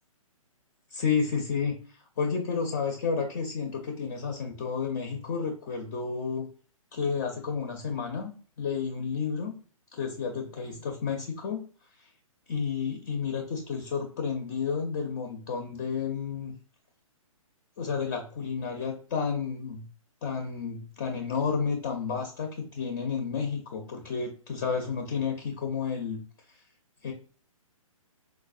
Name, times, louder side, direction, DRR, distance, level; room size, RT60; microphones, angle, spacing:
voice 1, 0.9-1.8 2.2-6.5 6.9-8.3 8.6-9.5 9.9-11.6 12.0-12.1 12.5-16.5 17.8-19.9 20.2-26.2 27.0-27.1, left 6 dB, 30° left, 3 dB, 0.4 m, -31 dB
4.0 x 2.0 x 2.4 m, 0.41 s
figure-of-eight pair, 125°, 18 cm